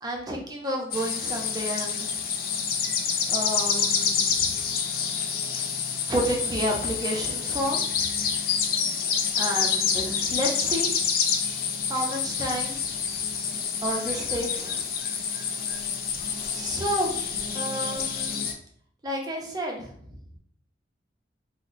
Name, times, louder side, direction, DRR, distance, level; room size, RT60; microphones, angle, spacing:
voice 1, 0.0-2.1 3.3-4.5 6.1-8.0 9.3-10.9 11.9-12.8 13.8-14.8 16.5-17.2 17.5-18.5 19.0-19.9, equal, 20° right, -1 dB, 0.6 m, -30 dB
sound 1, 0.9-18.5, left 6 dB, 50° left, 0.4 m, -28 dB
2.7 x 2.1 x 3.9 m, 0.63 s
head